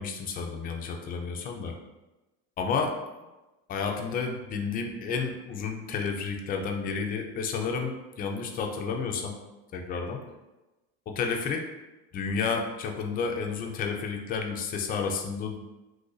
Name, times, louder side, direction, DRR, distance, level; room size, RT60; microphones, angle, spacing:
voice 1, 0.0-1.7 2.6-2.9 3.7-9.3 9.7-10.2 11.1-11.6 12.1-15.6, left 5 dB, 25° left, 3 dB, 0.4 m, -31 dB
3.0 x 2.5 x 3.8 m, 1.1 s
cardioid pair, 140°, 33 cm